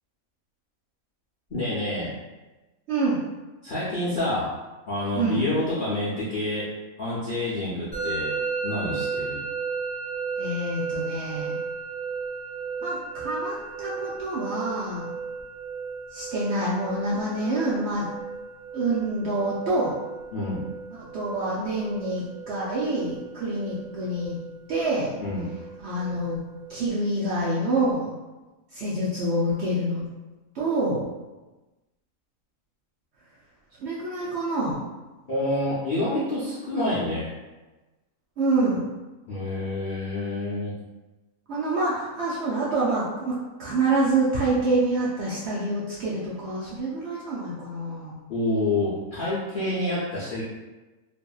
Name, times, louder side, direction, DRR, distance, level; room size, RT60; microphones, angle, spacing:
voice 1, 1.5-2.2 3.6-4.5 4.9-6.7 7.0-8.3 8.6-9.4 20.3-20.6 25.2-25.5 35.3-37.3 39.3-40.7 48.3-50.4, left 1 dB, 60° left, -10 dB, 0.5 m, -28 dB
voice 2, 2.9-3.3 5.1-5.4 10.4-11.6 12.8-15.1 16.1-18.1 18.7-20.0 20.9-24.4 24.7-25.1 25.8-26.4 26.7-28.1 28.7-30.0 30.5-31.1 33.8-34.9 38.4-39.0 41.5-48.2, right 2 dB, 65° right, -7 dB, 0.7 m, -27 dB
Musical instrument, 7.9-26.8, right 5 dB, 20° right, 1.0 m, -35 dB
2.7 x 2.5 x 2.3 m, 1.1 s
omnidirectional pair, 1.5 m